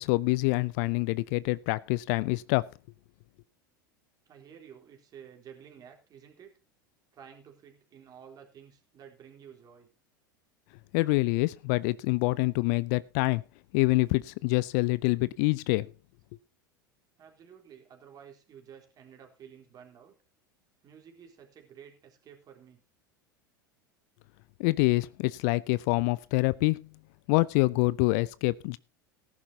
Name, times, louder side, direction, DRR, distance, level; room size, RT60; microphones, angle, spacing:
voice 1, 0.0-2.7 10.9-13.4 13.7-15.9 24.6-26.9 27.3-28.8, left 23 dB, 55° left, 0.5 m, -26 dB
voice 2, 4.3-6.5 7.1-9.9 17.2-20.2 20.8-22.8, right 8 dB, 35° right, 3.7 m, -52 dB
18.0 x 11.0 x 2.8 m
figure-of-eight pair, 80°, 11 cm